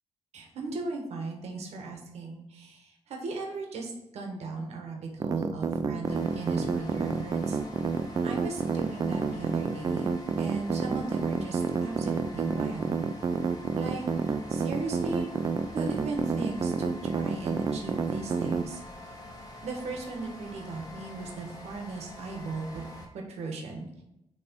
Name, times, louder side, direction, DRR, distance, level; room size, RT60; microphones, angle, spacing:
voice 1, 0.3-7.6 8.2-10.1 10.4-12.9 13.8-14.0 14.5-15.3 15.7-18.8 19.6-22.8 23.1-24.0, right 3 dB, 85° right, 1 dB, 1.4 m, -37 dB
sound 1, 5.2-18.6, right 5 dB, 35° right, 0.4 m, -28 dB
sound 2, 6.0-23.1, left 1 dB, 35° left, 1.3 m, -46 dB
9.4 x 3.2 x 4.6 m, 0.89 s
wide cardioid pair, 155°, 11 cm